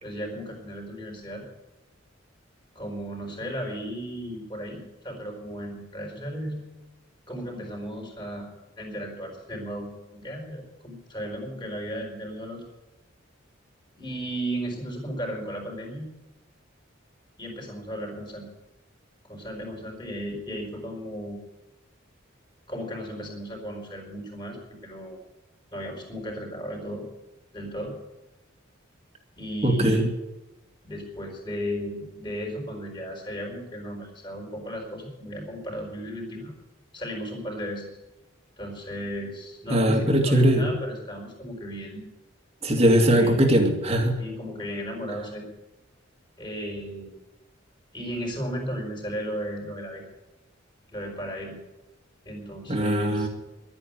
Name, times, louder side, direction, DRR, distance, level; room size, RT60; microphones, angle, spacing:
voice 1, 0.0-1.4 2.7-6.6 7.3-8.5 8.8-12.6 13.9-16.1 17.4-18.5 19.2-21.4 22.7-24.6 24.8-25.2 25.7-27.0 27.5-28.0 29.4-30.1 30.8-36.5 36.9-38.0 38.6-42.1 42.8-43.4 44.2-45.5 46.4-47.1 47.9-50.0 50.9-51.6 52.2-53.3, equal, 25° left, 0 dB, 4.6 m, -35 dB
voice 2, 29.6-30.1 39.7-40.7 42.6-44.2 52.7-53.3, right 1 dB, 30° right, 3 dB, 2.2 m, -20 dB
12.0 x 9.8 x 9.0 m, 1.0 s
head